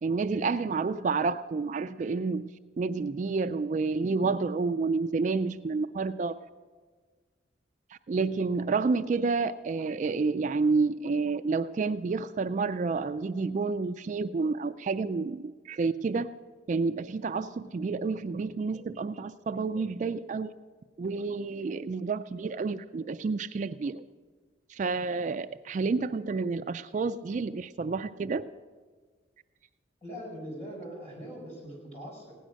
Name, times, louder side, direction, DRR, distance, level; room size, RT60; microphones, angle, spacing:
voice 1, 0.0-6.4 7.9-16.3 16.7-20.5 21.0-24.0 24.7-28.4, right 4 dB, 40° right, 10 dB, 0.3 m, -29 dB
voice 2, 30.0-32.3, equal, 35° left, -3 dB, 6.0 m, -41 dB
16.5 x 10.0 x 6.3 m, 1.5 s
head